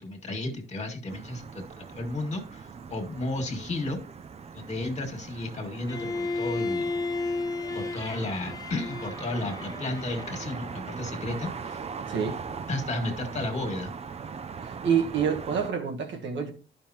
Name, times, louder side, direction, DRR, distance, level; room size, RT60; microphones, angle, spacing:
voice 1, 0.0-4.0 4.5-6.9 7.7-11.8 12.7-13.9, left 2 dB, 35° left, 2.0 m, -33 dB
sound 1, 1.1-15.7, right 6 dB, 30° right, 0.5 m, -40 dB
Bowed string instrument, 5.9-10.8, left 3 dB, 20° left, 0.6 m, -33 dB
voice 2, 12.1-12.4 14.6-16.5, right 7 dB, 65° right, 1.4 m, -27 dB
11.5 x 5.5 x 2.9 m
cardioid pair, 90°, 20 cm